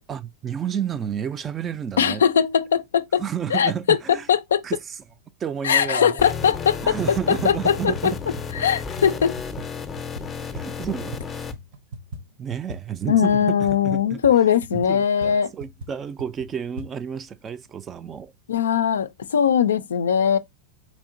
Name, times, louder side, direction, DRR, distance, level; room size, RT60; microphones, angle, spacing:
voice 1, 0.1-2.2 3.2-4.3 4.6-5.0 5.4-6.4 6.8-8.2 10.4-11.5 12.4-13.6 13.8-14.2 14.7-18.3, right 8 dB, 25° right, 0.3 m, -31 dB
voice 2, 2.0-3.2 3.5-4.0 4.3-4.6 5.6-7.0 7.4-8.1 8.6-9.3 13.1-15.5 18.5-20.4, left 8 dB, 80° left, 0.3 m, -20 dB
sound 1, 5.7-6.0 6.2-11.3 11.5-16.9, right 2 dB, 65° right, 0.8 m, -40 dB
sound 2, 6.2-11.5, left 6 dB, 20° left, 0.5 m, -33 dB
4.2 x 2.8 x 2.4 m
hypercardioid pair, 100°, 0 cm